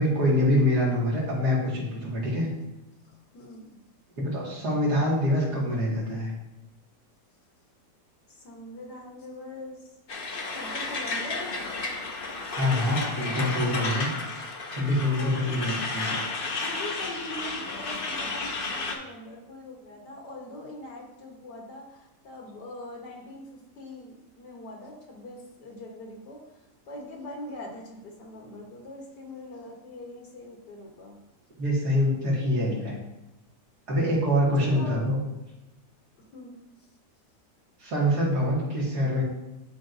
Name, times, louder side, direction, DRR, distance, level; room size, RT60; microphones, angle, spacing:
voice 1, 0.0-2.5 4.2-6.3 12.5-14.1 14.7-16.2 31.6-32.9 33.9-35.2 37.8-39.2, left 1 dB, 70° right, -5 dB, 2.6 m, -25 dB
voice 2, 3.1-3.8 8.3-12.0 13.0-13.1 15.1-15.6 16.6-31.2 34.6-35.0 36.2-36.6, left 1 dB, 75° left, 0 dB, 1.9 m, -42 dB
Truck, 10.1-19.0, left 3 dB, 50° left, 0.7 m, -32 dB
11.0 x 4.5 x 2.7 m, 0.95 s
omnidirectional pair, 1.8 m